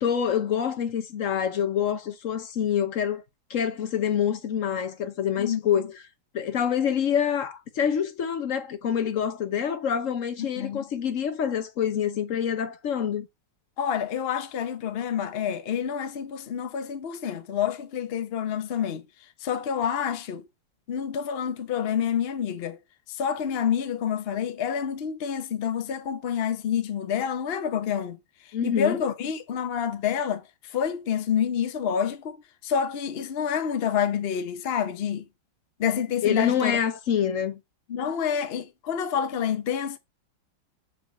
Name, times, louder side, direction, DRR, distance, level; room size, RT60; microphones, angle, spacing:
voice 1, 0.0-3.2 3.5-5.9 6.3-13.3 28.5-29.0 36.2-37.6, left 8 dB, 60° left, 0.8 m, -26 dB
voice 2, 10.4-10.9 13.8-19.1 19.4-20.4 20.9-22.8 23.1-35.3 35.8-36.8 37.9-40.0, left 8 dB, 80° left, 0.5 m, -28 dB
6.7 x 4.9 x 4.1 m
omnidirectional pair, 2.2 m